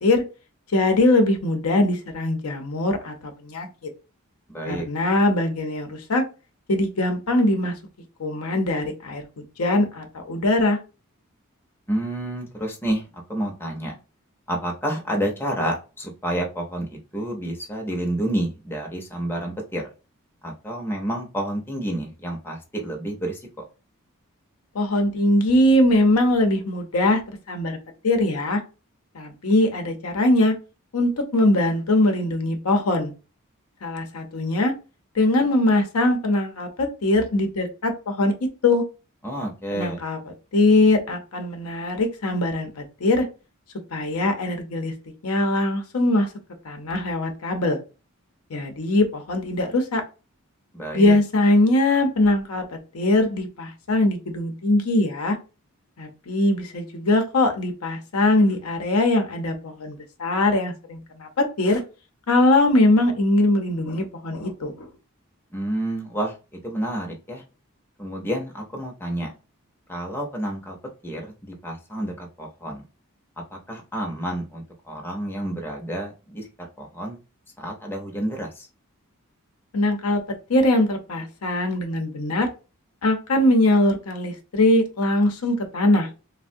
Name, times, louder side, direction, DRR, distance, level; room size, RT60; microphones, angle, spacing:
voice 1, 0.7-3.9 4.7-6.2 6.7-7.7 8.2-10.8 24.7-27.2 27.5-27.8 28.0-28.6 29.1-30.5 30.9-33.1 33.8-34.7 35.1-38.3 38.6-38.8 39.7-40.2 40.5-43.3 43.9-44.9 45.2-46.3 46.6-47.8 48.5-50.0 50.9-52.6 52.9-55.4 56.0-61.8 62.3-64.9 79.7-80.2 80.5-82.5 83.0-86.1, left 1 dB, 85° left, 4 dB, 0.7 m, -21 dB
voice 2, 4.5-4.9 11.9-13.9 14.5-19.9 20.4-23.5 39.2-40.0 50.7-51.2 65.5-66.3 66.6-67.4 68.0-69.3 69.9-70.8 71.0-72.8 73.5-77.2 77.6-78.7, right 1 dB, 10° left, 0 dB, 0.6 m, -29 dB
3.4 x 2.1 x 2.6 m, 0.31 s
head